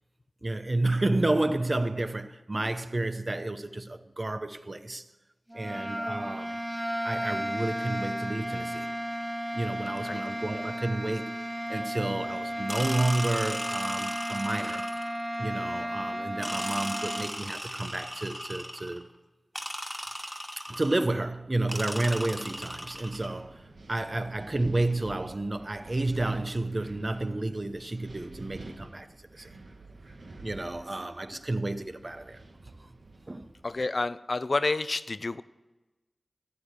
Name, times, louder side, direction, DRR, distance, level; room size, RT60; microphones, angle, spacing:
voice 1, 0.4-5.1 5.5-6.6 7.0-8.9 9.5-11.3 11.7-14.9 15.4-19.1 20.6-29.1 29.4-29.5 30.4-32.4 32.8-32.9 33.3-33.5, right 2 dB, 45° right, 0.8 m, -31 dB
sound 1, 5.5-17.3, equal, 15° right, 0.9 m, -34 dB
sound 2, 12.7-15.2 16.4-19.0 19.5-21.1 21.7-23.3, equal, 5° left, 1.7 m, -37 dB
Wind, 22.2-33.7, right 2 dB, 80° right, 1.3 m, -49 dB
voice 2, 33.6-35.4, left 3 dB, 60° left, 0.4 m, -29 dB
13.5 x 8.8 x 6.7 m
cardioid pair, 45°, 0 cm